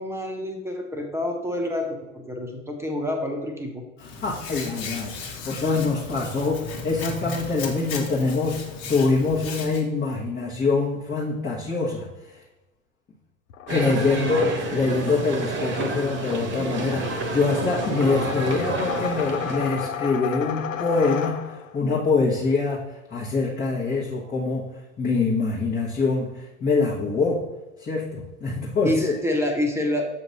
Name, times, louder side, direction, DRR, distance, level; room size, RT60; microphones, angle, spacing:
voice 1, 0.0-3.8 14.1-14.6 28.8-30.1, left 1 dB, 5° right, 2 dB, 1.0 m, -28 dB
Hands, 4.0-9.8, left 4 dB, 45° left, 1.5 m, -36 dB
voice 2, 4.2-8.6 8.9-12.4 13.7-21.4 21.7-24.6 25.0-27.4 27.8-29.1, left 3 dB, 25° left, -4 dB, 1.2 m, -24 dB
sound 1, 13.5-21.8, left 8 dB, 80° left, 0.7 m, -34 dB
sound 2, 13.7-19.9, right 2 dB, 30° right, 1.1 m, -30 dB
7.1 x 2.9 x 5.4 m, 1.0 s
hypercardioid pair, 90°, 39 cm